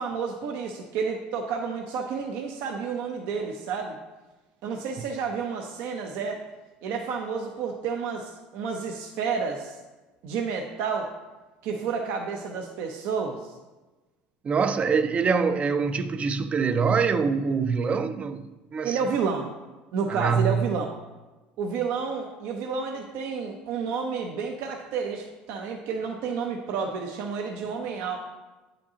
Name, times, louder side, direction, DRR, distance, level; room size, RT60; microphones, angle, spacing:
voice 1, 0.0-4.0 4.6-6.4 6.8-9.8 10.2-11.1 11.6-13.5 18.8-19.5 19.9-20.9 21.6-28.2, right 5 dB, 70° right, 0.7 m, -30 dB
voice 2, 14.4-19.0 20.1-20.6, right 5 dB, 30° right, 0.5 m, -24 dB
8.5 x 5.1 x 2.8 m
supercardioid pair, 100°, 4 cm